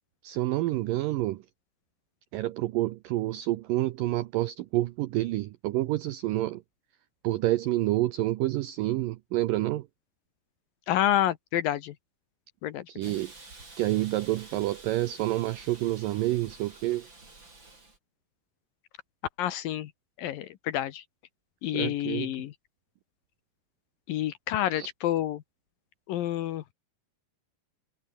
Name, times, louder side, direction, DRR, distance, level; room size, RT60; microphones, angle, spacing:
voice 1, 0.2-1.5 2.3-6.6 7.2-9.9 12.9-13.3 13.8-17.1 21.7-22.3 24.8-24.9, right 16 dB, 85° right, 1.9 m, -28 dB
voice 2, 10.9-12.0 12.6-13.1 19.4-19.9 20.2-21.0 21.6-22.5 24.1-25.4 26.1-26.6, left 12 dB, 70° left, 2.4 m, -29 dB
Hiss, 13.0-18.0, right 3 dB, 25° right, 6.3 m, -50 dB
omnidirectional pair, 4.8 m